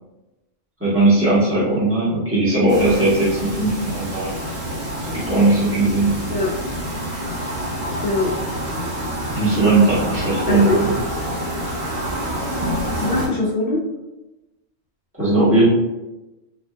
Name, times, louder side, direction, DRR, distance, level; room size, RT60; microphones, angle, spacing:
voice 1, 0.8-4.3 5.1-6.1 9.3-10.9 15.2-15.7, right 2 dB, 10° right, -9 dB, 1.1 m, -18 dB
sound 1, 2.7-13.3, equal, 30° right, 0.8 m, -27 dB
voice 2, 8.0-8.3 10.5-10.8 12.9-13.8, left 2 dB, 75° left, -4 dB, 0.4 m, -22 dB
3.2 x 2.6 x 2.2 m, 1.0 s
omnidirectional pair, 1.3 m